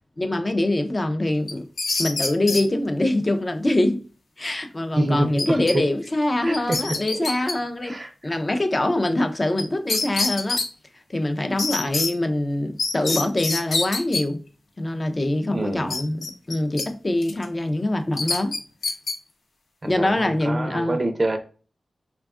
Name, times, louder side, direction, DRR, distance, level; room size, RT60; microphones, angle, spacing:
voice 1, 0.2-1.7 2.0-4.0 4.4-10.6 11.1-14.4 14.8-18.6 19.9-21.0, left 1 dB, 30° left, 0.4 m, -24 dB
sound 1, 1.5-2.6 5.4-5.7 6.1-6.2 6.5-7.5 9.6-9.7 9.9-10.7 11.6-12.1 12.8-14.2 15.9-16.9 17.2-17.4 18.2-19.1, left 3 dB, 80° left, 0.5 m, -26 dB
voice 2, 5.0-5.8 6.4-6.8 7.1-7.2 7.8-8.1 15.5-15.9 19.8-21.4, right 1 dB, 35° right, 0.5 m, -26 dB
3.4 x 2.2 x 2.3 m
wide cardioid pair, 85°, 0 cm